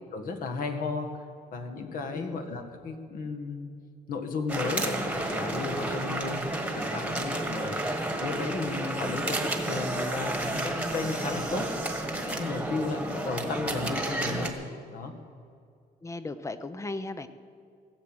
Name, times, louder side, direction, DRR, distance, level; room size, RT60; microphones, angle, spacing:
voice 1, 0.1-1.2 1.5-3.7 4.1-12.0 12.3-14.6 14.9-15.1, left 4 dB, 55° left, 3 dB, 1.7 m, -34 dB
sound 1, 4.5-14.5, right 1 dB, 5° right, 1.5 m, -31 dB
voice 2, 16.0-17.3, left 2 dB, 15° left, 12 dB, 0.7 m, -36 dB
17.0 x 7.6 x 7.9 m, 2.3 s
cardioid pair, 125°, 17 cm